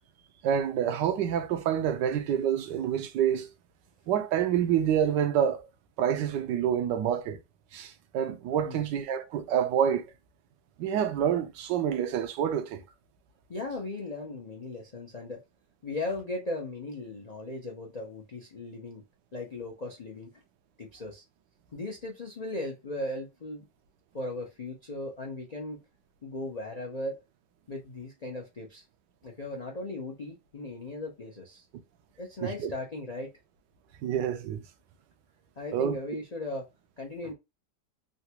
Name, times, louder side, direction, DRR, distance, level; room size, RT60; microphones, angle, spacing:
voice 1, 0.4-3.5 4.1-5.7 6.0-7.4 7.7-10.1 10.8-12.8 32.4-32.7 34.0-34.6 35.7-36.0, right 9 dB, 80° right, 1.3 m, -27 dB
voice 2, 13.5-15.4 15.8-19.0 19.3-20.3 20.8-21.2 21.7-23.6 24.1-25.8 26.2-27.2 27.7-28.8 29.2-31.7 32.2-33.3 35.6-36.7 37.0-37.3, left 2 dB, 65° left, 0.4 m, -37 dB
3.8 x 2.3 x 2.8 m
omnidirectional pair, 1.9 m